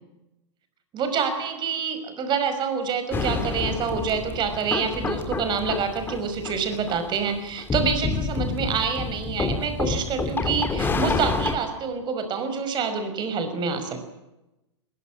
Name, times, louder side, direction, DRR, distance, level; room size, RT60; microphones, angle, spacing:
voice 1, 0.9-14.0, right 6 dB, 30° right, 9 dB, 5.6 m, -27 dB
sound 1, 3.1-11.5, left 4 dB, 15° left, 3.2 m, -28 dB
22.5 x 20.0 x 8.7 m, 0.94 s
hypercardioid pair, 115°, 15 cm